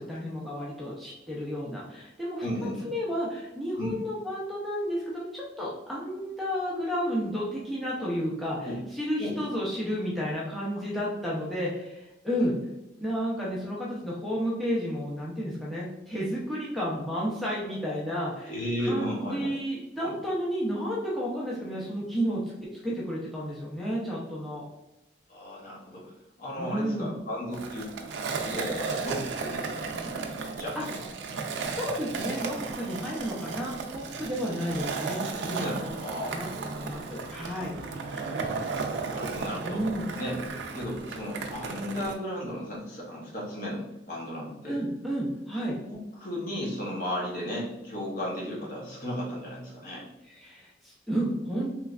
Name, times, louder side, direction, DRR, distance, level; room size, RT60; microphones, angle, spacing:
voice 1, 0.0-2.5 2.8-12.6 13.0-22.4 22.8-24.6 26.6-27.1 30.8-30.9 31.6-35.9 36.2-37.8 39.6-40.0 44.6-45.8 50.3-51.7, equal, ahead, -7 dB, 0.6 m, -32 dB
voice 2, 2.4-2.9 3.8-4.0 8.6-8.8 9.2-9.4 18.5-19.5 20.0-20.1 25.3-26.1 26.4-27.9 28.5-29.9 30.5-31.0 35.6-36.3 37.9-39.8 40.2-40.4 40.7-44.8 45.9-50.1, equal, 50° left, -4 dB, 1.0 m, -35 dB
Skateboard, 27.5-42.1, right 4 dB, 80° right, 0.4 m, -35 dB
3.1 x 3.1 x 2.4 m, 0.95 s
head